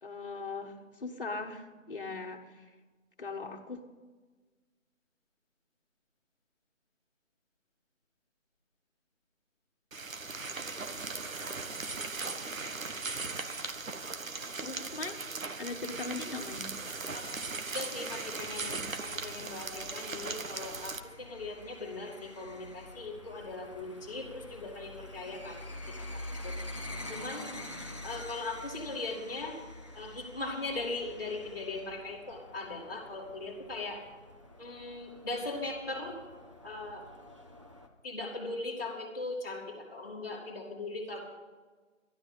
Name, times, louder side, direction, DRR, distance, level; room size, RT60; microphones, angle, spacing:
voice 1, 0.0-2.7 3.2-3.8 14.6-15.2 15.6-16.7, left 3 dB, 40° left, 2 dB, 1.5 m, -40 dB
sound 1, 9.9-21.0, right 4 dB, 85° right, 1.4 m, -38 dB
voice 2, 17.7-25.6 26.0-26.6 27.1-27.5 28.0-29.6 29.9-34.0 34.6-36.2 36.6-37.0 38.0-41.2, left 2 dB, 15° left, -7 dB, 2.1 m, -39 dB
sound 2, 18.5-37.9, left 1 dB, 25° right, 0.8 m, -47 dB
13.0 x 12.0 x 5.4 m, 1.3 s
figure-of-eight pair, 175°, 39 cm